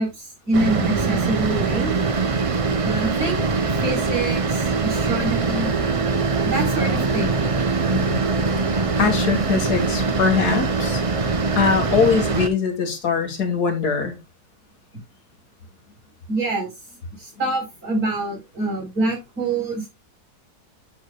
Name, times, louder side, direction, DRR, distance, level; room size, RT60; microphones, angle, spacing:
voice 1, 0.0-1.9 2.8-3.4 3.8-5.8 6.4-7.3 16.3-16.7 17.2-19.9, right 2 dB, 65° right, 4.9 m, -26 dB
sound 1, 0.5-12.5, right 4 dB, 40° right, 0.4 m, -22 dB
voice 2, 9.0-11.0 11.5-14.2, left 5 dB, 85° left, 2.1 m, -22 dB
9.8 x 6.6 x 2.2 m
omnidirectional pair, 1.6 m